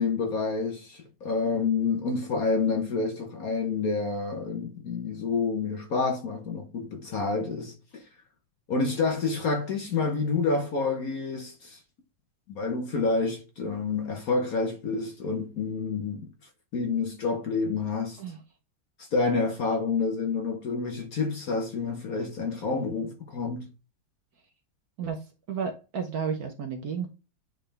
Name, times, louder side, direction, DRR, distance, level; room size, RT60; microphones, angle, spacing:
voice 1, 0.0-8.0 8.7-11.8 12.5-16.2 16.7-18.2 19.0-23.7, left 4 dB, 55° left, 1.1 m, -28 dB
voice 2, 25.0-27.1, right 6 dB, 60° right, 1.1 m, -32 dB
9.3 x 3.8 x 3.3 m
omnidirectional pair, 2.3 m